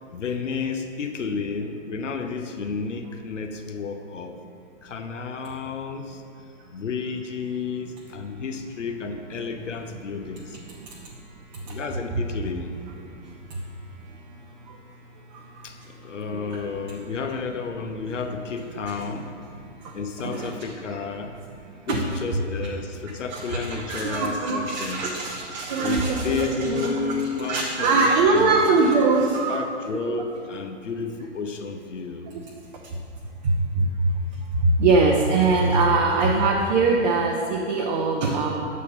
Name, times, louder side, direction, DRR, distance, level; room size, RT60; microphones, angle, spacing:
voice 1, 0.1-4.4 4.8-6.2 6.7-10.6 11.6-12.7 15.6-19.3 19.9-21.4 21.9-25.1 25.8-28.7 29.5-32.3, left 5 dB, 85° left, 6 dB, 0.6 m, -31 dB
voice 2, 20.2-20.6 20.9-21.0 21.9-22.0 23.3-26.9 27.4-29.6 30.1-30.2 32.3-32.5 33.4-33.8 34.6-38.5, right 3 dB, 40° right, -1 dB, 0.6 m, -22 dB
7.4 x 4.1 x 5.5 m, 2.5 s
figure-of-eight pair, 115°, 36 cm